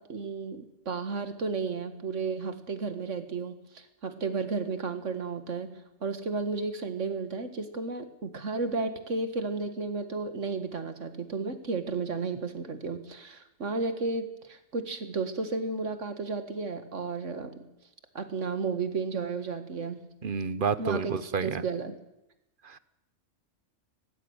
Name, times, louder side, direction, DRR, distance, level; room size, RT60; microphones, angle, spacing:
voice 1, 0.0-17.7 18.1-20.1 20.8-21.1 21.4-22.0, right 4 dB, 65° right, 9 dB, 2.2 m, -33 dB
voice 2, 20.2-21.6 22.6-22.8, right 5 dB, 45° right, 16 dB, 0.9 m, -30 dB
18.5 x 15.5 x 9.7 m, 0.89 s
omnidirectional pair, 1.4 m